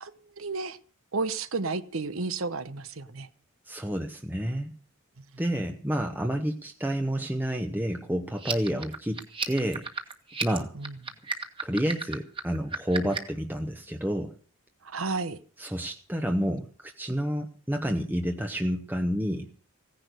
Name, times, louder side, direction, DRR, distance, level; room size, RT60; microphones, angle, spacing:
voice 1, 0.0-0.8 1.1-3.3 10.7-11.0 14.8-15.4, right 3 dB, 75° right, 13 dB, 1.0 m, -32 dB
voice 2, 3.7-4.7 5.4-9.8 10.4-10.7 11.6-14.3 15.6-19.5, equal, 10° right, 4 dB, 0.9 m, -29 dB
sound 1, 8.3-13.4, right 4 dB, 25° right, 1.6 m, -34 dB
16.5 x 10.5 x 6.7 m, 0.43 s
head